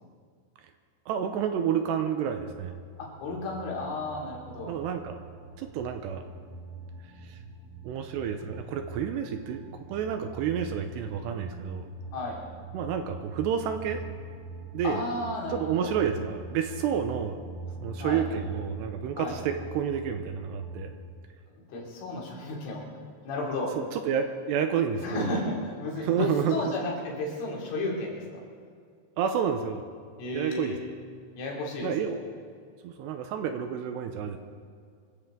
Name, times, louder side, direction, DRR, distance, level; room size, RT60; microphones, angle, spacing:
voice 1, 1.1-2.7 4.7-5.2 5.6-6.2 7.2-7.4 7.8-9.6 9.9-11.9 12.7-14.0 14.7-15.0 15.5-17.4 17.8-20.9 23.8-25.4 26.0-26.6 29.2-29.9 30.3-30.8 31.8-32.2 32.8-34.4, right 8 dB, 80° right, 6 dB, 2.7 m, -30 dB
voice 2, 3.0-4.7 12.1-12.4 14.8-15.9 18.0-18.2 19.2-19.4 21.7-22.8 23.3-23.7 25.0-28.4 30.2-30.8 31.4-32.2, left 2 dB, 90° left, -3 dB, 5.6 m, -33 dB
sound 1, 3.2-20.9, right 3 dB, 55° right, 4.8 m, -43 dB
25.0 x 15.0 x 3.8 m, 2.2 s
omnidirectional pair, 5.5 m